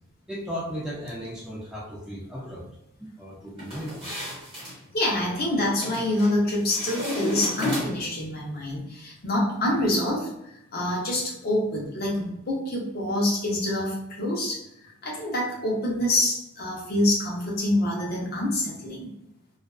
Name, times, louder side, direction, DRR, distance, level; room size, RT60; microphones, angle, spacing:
voice 1, 0.3-2.7 3.0-4.1, equal, 5° right, -5 dB, 0.3 m, -36 dB
sound 1, 3.6-4.8 5.8-6.3 6.7-8.2, left 1 dB, 25° right, 1.0 m, -32 dB
voice 2, 4.9-19.1, left 1 dB, 45° left, -3 dB, 0.7 m, -26 dB
2.5 x 2.3 x 2.3 m, 0.81 s
head